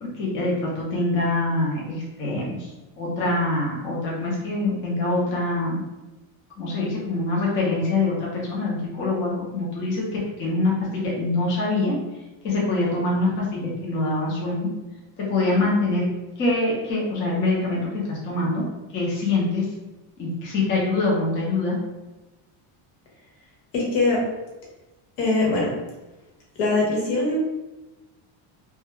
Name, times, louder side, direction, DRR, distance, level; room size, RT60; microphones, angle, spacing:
voice 1, 0.0-5.8 6.6-14.7 15.2-16.1 16.4-18.7 18.9-19.7 20.2-21.8, left 2 dB, 25° left, -5 dB, 0.4 m, -24 dB
voice 2, 23.7-24.2 25.2-25.7 26.6-27.4, left 3 dB, 75° left, -3 dB, 1.1 m, -22 dB
2.2 x 2.1 x 3.0 m, 1.1 s
cardioid pair, 165°, 48 cm